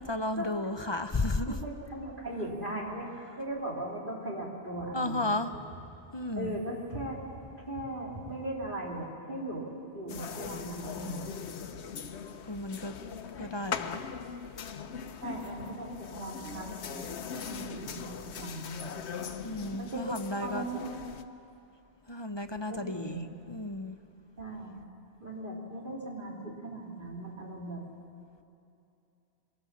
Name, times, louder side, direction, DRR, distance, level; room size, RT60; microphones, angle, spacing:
voice 1, 0.0-1.6 4.9-5.5 6.1-6.6 10.5-11.1 12.5-12.9 13.4-14.0 19.4-20.7 22.1-23.2 23.5-24.0, left 2 dB, 30° left, 8 dB, 0.7 m, -33 dB
voice 2, 1.5-5.4 6.4-7.2 7.7-9.6 9.9-11.5 15.2-17.0 17.4-18.9 19.8-20.1 20.4-20.9 22.7-23.2 24.4-24.7 25.2-27.8, right 1 dB, 50° right, -2 dB, 3.3 m, -38 dB
sound 1, 10.1-21.2, left 6 dB, 85° left, 1.1 m, -40 dB
23.0 x 17.5 x 7.3 m, 2.7 s
omnidirectional pair, 1.1 m